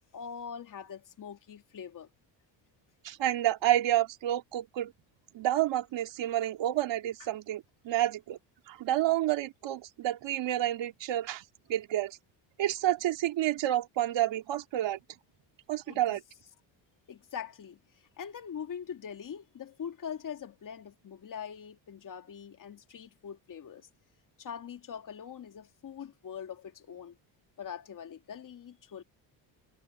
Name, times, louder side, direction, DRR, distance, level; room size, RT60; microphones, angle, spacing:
voice 1, 0.0-2.1 15.9-16.2 17.1-23.9 24.4-27.2 27.6-29.0, left 7 dB, 40° left, 2.5 m, -43 dB
voice 2, 3.0-4.9 5.3-8.4 8.7-11.4 11.7-12.2 12.6-15.0 15.7-16.2, right 13 dB, 65° right, 2.7 m, -29 dB
cardioid pair, 125°, 47 cm